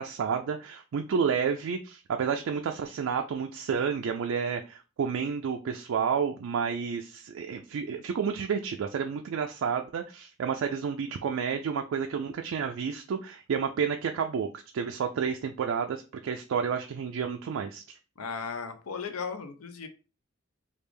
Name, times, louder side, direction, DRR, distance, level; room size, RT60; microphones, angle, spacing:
voice 1, 0.0-18.0, right 6 dB, 70° right, 0.3 m, -30 dB
voice 2, 18.2-19.9, left 5 dB, 85° left, 0.6 m, -36 dB
3.2 x 2.4 x 3.4 m
head